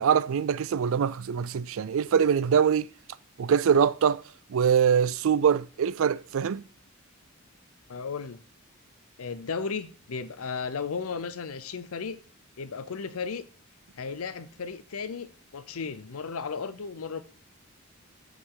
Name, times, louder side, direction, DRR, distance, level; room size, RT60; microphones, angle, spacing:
voice 1, 0.0-2.9 3.4-4.2 4.5-6.6, right 7 dB, 65° right, 0.4 m, -23 dB
voice 2, 7.9-8.4 9.2-12.2 12.6-13.4 14.0-17.2, left 5 dB, 80° left, 0.6 m, -35 dB
13.0 x 4.9 x 3.8 m
head